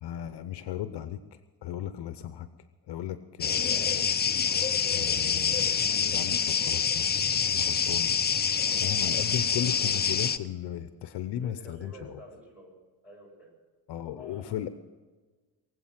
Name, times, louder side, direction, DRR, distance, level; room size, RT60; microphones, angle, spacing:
voice 1, 0.0-1.2 1.6-2.5 2.9-4.1 4.9-8.1 8.8-12.2 13.9-14.7, left 11 dB, 65° left, 11 dB, 0.9 m, -36 dB
sound 1, 3.4-10.4, left 7 dB, 25° left, 0.5 m, -26 dB
voice 2, 11.3-12.8 13.0-13.5 14.1-14.6, equal, 5° right, -1 dB, 6.8 m, -49 dB
22.5 x 8.2 x 7.5 m, 1.3 s
cardioid pair, 110°, 44 cm